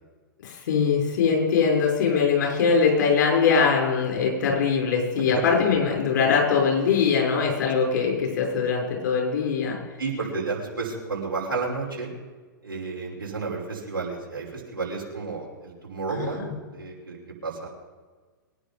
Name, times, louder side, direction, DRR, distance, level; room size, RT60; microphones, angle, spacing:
voice 1, 0.4-9.8 16.1-16.5, left 5 dB, 60° left, 0 dB, 6.3 m, -22 dB
voice 2, 10.0-12.1 12.6-17.7, right 4 dB, 80° right, -3 dB, 5.6 m, -31 dB
23.0 x 10.0 x 5.4 m, 1.4 s
figure-of-eight pair, 110°, 11 cm